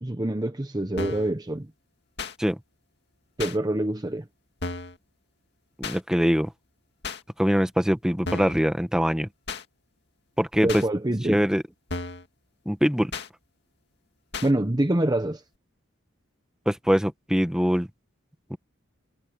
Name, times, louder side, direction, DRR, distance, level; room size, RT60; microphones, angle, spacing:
voice 1, 0.0-1.7 3.4-4.3 10.6-11.4 14.4-15.4, right 1 dB, 20° right, 0.9 m, -25 dB
sound 1, 1.0-1.3 2.2-2.4 3.4-3.6 4.6-5.0 5.8-6.0 7.0-7.2 8.3-8.6 9.5-9.6 10.7-10.9 11.9-12.3 13.1-13.3 14.3-14.5, left 3 dB, 55° left, 2.2 m, -33 dB
voice 2, 5.8-6.5 7.4-9.3 10.4-10.8 11.3-11.6 12.6-13.1 16.6-17.9 18.5-18.6, equal, 5° right, 1.3 m, -23 dB
head